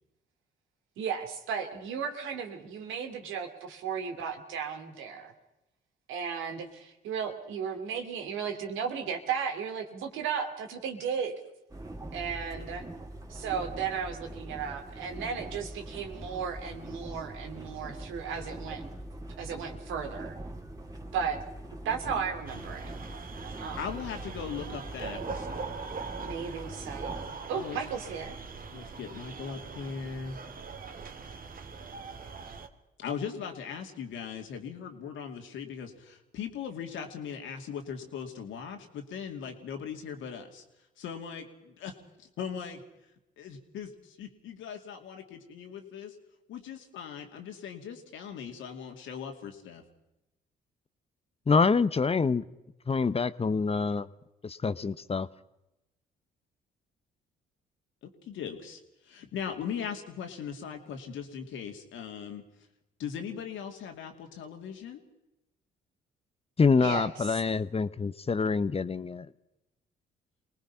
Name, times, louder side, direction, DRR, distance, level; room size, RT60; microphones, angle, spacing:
voice 1, 1.0-5.3 6.1-11.3 12.1-12.9 13.3-18.8 19.4-20.4 21.1-21.4 21.8-22.9 23.6-23.8 26.1-28.4 66.8-67.1, right 7 dB, 80° right, 5 dB, 2.7 m, -35 dB
sound 1, 11.7-27.3, right 1 dB, 15° right, 2.8 m, -42 dB
sound 2, 22.5-32.7, right 5 dB, 45° right, 2.0 m, -42 dB
voice 2, 23.8-25.8 27.5-27.8 28.7-30.4 33.0-40.6 41.0-41.9 42.2-42.8 43.4-46.2 46.5-49.8 58.0-62.4 63.0-65.0, left 7 dB, 75° left, 4 dB, 2.6 m, -39 dB
voice 3, 51.5-52.4 52.9-54.1 54.4-55.3 66.6-69.3, left 4 dB, 30° left, 16 dB, 0.9 m, -26 dB
24.5 x 19.0 x 5.7 m, 0.93 s
supercardioid pair, 60°, 20 cm